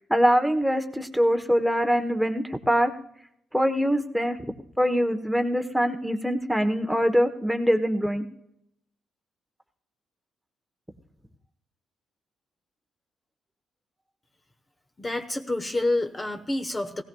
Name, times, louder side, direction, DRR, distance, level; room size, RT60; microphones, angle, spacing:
voice 1, 0.0-2.9 3.5-4.4 4.8-8.2, equal, ahead, 6 dB, 1.0 m, -23 dB
voice 2, 15.0-17.0, left 2 dB, 20° left, 6 dB, 0.9 m, -28 dB
17.5 x 16.5 x 2.3 m, 0.77 s
cardioid pair, 90°, 0 cm